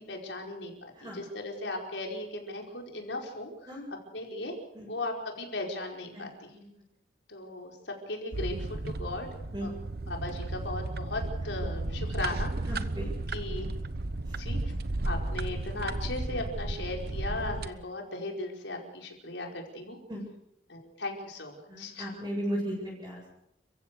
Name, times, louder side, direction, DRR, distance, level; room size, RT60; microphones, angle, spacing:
voice 1, 0.1-3.5 4.1-4.5 4.9-6.5 7.3-9.8 10.1-12.5 13.3-13.7 14.4-14.6 15.0-20.0 20.7-22.1, left 2 dB, 80° left, 1 dB, 5.1 m, -37 dB
sound 1, 8.3-17.7, right 2 dB, 60° right, 1.0 m, -34 dB
voice 2, 12.7-13.1 20.1-20.2 21.7-23.3, equal, 20° right, -5 dB, 7.8 m, -36 dB
29.5 x 16.0 x 6.8 m, 0.78 s
head